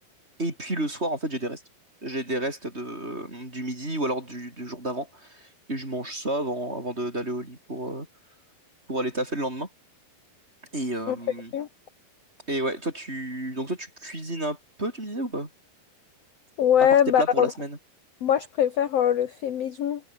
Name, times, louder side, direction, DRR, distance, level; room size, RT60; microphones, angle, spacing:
voice 1, 0.4-1.6 2.0-8.1 8.9-9.7 10.7-11.5 12.5-15.5 16.8-16.9 17.2-17.8, right 1 dB, 15° right, 5.3 m, -31 dB
voice 2, 16.6-17.5 18.2-20.0, left 9 dB, 60° left, 1.7 m, -22 dB
omnidirectional pair, 4.7 m